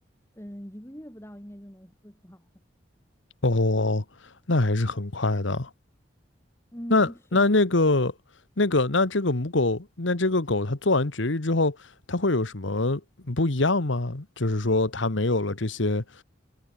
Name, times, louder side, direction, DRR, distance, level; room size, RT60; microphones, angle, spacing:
voice 1, 0.3-2.5 6.7-7.5, equal, 15° left, 3.4 m, -41 dB
voice 2, 3.4-4.0 4.5-5.7 6.9-8.1 8.6-11.8 12.1-13.0 13.3-16.2, left 2 dB, 80° left, 1.5 m, -24 dB
head